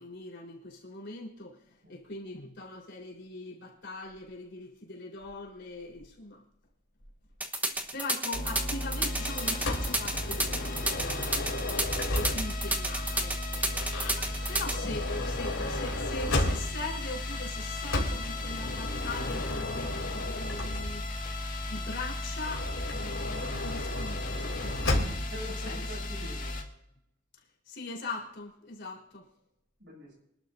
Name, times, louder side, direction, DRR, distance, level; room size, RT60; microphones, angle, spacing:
voice 1, 0.0-1.6 1.9-6.4 7.7-13.6 14.5-21.1 21.7-26.0 27.7-29.2, left 2 dB, 55° left, -2 dB, 4.1 m, -41 dB
sound 1, 7.4-14.7, right 2 dB, 10° right, 1.1 m, -30 dB
sound 2, 8.3-26.6, left 1 dB, 40° left, 2.0 m, -36 dB
Motor vehicle (road) / Sliding door, 9.6-12.7 13.7-17.0 17.9-21.2 22.4-25.4, left 1 dB, 80° left, 3.0 m, -34 dB
voice 2, 25.3-26.6 29.8-30.1, left 1 dB, 60° right, -1 dB, 7.1 m, -45 dB
26.0 x 12.0 x 2.6 m, 0.81 s
head